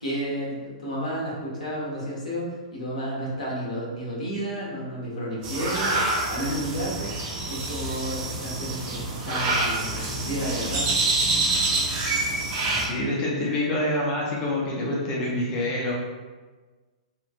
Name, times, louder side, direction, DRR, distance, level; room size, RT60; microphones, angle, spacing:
voice 1, 0.0-6.0 6.3-7.1 7.5-10.9, equal, 75° left, -5 dB, 1.0 m, -31 dB
sound 1, 5.4-12.9, right 2 dB, 35° right, 0.7 m, -26 dB
voice 2, 12.9-15.9, left 1 dB, 30° left, -4 dB, 0.6 m, -26 dB
2.9 x 2.4 x 2.5 m, 1.3 s
figure-of-eight pair, 110°, 4 cm